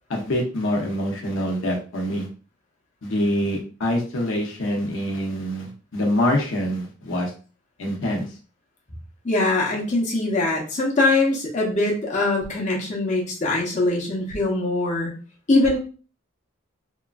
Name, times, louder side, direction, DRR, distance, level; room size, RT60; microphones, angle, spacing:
voice 1, 0.1-2.3 3.0-7.3 7.8-8.3, left 1 dB, 70° left, -1 dB, 0.7 m, -25 dB
voice 2, 9.2-15.1 15.5-15.8, left 2 dB, 35° left, -4 dB, 0.7 m, -22 dB
2.9 x 2.4 x 2.3 m, 0.37 s
head